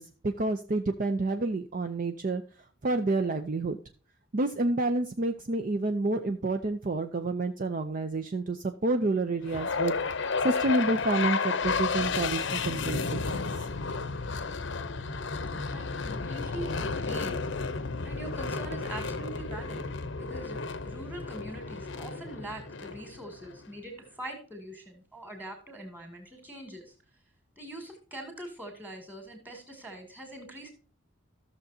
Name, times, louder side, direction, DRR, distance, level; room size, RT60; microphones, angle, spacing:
voice 1, 0.0-2.4 2.8-3.8 4.3-10.0 10.4-13.5, right 2 dB, 40° right, 7 dB, 0.5 m, -29 dB
sound 1, 9.5-23.6, left 4 dB, 60° left, 0.7 m, -32 dB
voice 2, 15.7-17.5 18.0-19.9 20.2-27.0 27.6-30.7, right 1 dB, 10° right, 3 dB, 2.3 m, -43 dB
14.0 x 6.6 x 2.7 m, 0.40 s
head